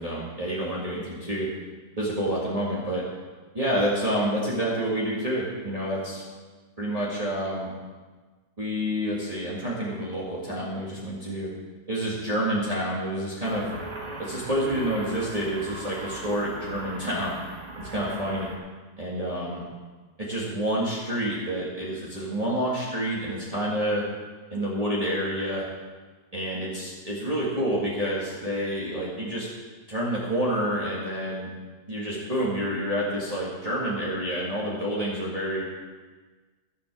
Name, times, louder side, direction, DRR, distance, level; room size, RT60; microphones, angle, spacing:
voice 1, 0.0-1.5 2.0-3.0 3.5-6.2 6.8-7.7 8.6-11.5 11.9-13.7 14.2-17.4 17.8-18.5 19.0-19.6 20.2-24.0 24.5-25.6 26.3-29.5 29.9-31.5 31.9-35.6, equal, 20° right, -7 dB, 2.2 m, -28 dB
sound 1, 13.4-18.6, right 2 dB, 70° right, 2.8 m, -39 dB
15.5 x 7.2 x 6.3 m, 1.4 s
omnidirectional pair, 1.8 m